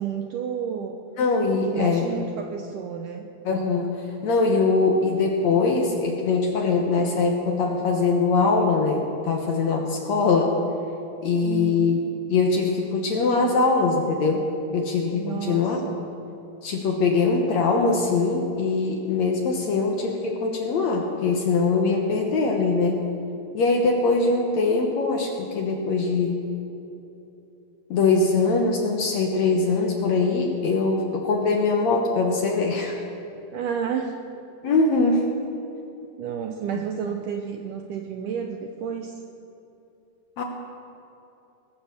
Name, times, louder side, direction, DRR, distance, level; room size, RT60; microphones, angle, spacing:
voice 1, 0.0-1.0 1.7-3.3 11.4-12.0 15.1-16.0 33.5-34.2 36.2-39.1, right 8 dB, 80° right, 4 dB, 1.9 m, -31 dB
voice 2, 1.2-2.1 3.4-10.6 11.2-12.0 12.3-14.4 14.7-15.8 16.6-23.0 23.5-26.4 27.9-33.0 34.6-35.3 40.4-40.5, left 4 dB, 65° left, 2 dB, 1.8 m, -22 dB
21.5 x 7.2 x 6.8 m, 2.9 s
omnidirectional pair, 4.3 m